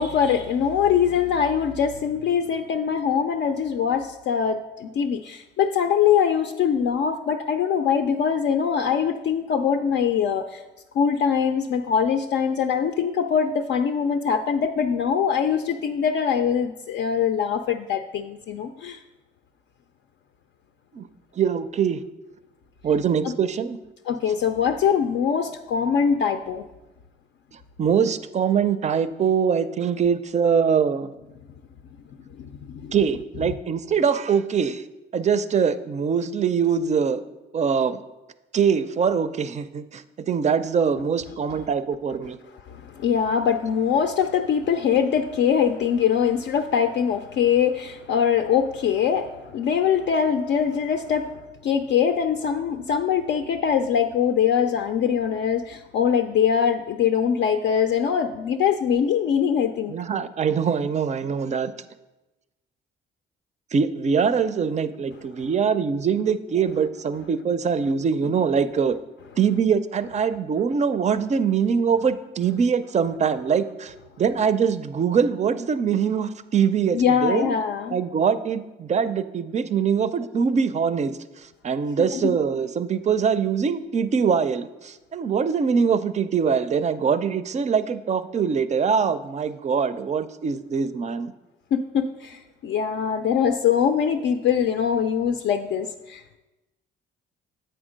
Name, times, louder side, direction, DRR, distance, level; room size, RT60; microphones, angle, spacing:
voice 1, 0.0-10.6 10.9-19.0 23.2-23.3 24.1-26.6 32.4-32.9 42.7-59.9 76.9-78.0 82.0-82.3 91.7-96.4, left 7 dB, 65° left, 6 dB, 0.4 m, -23 dB
voice 2, 21.4-22.0 22.8-23.8 27.8-31.1 32.9-34.8 35.1-37.2 37.5-38.0 38.5-42.4 59.9-61.7 63.7-68.9 69.4-77.6 77.9-81.1 81.6-91.3, right 6 dB, 35° right, 13 dB, 0.4 m, -23 dB
7.8 x 4.4 x 5.0 m, 1.0 s
cardioid pair, 90°, 20 cm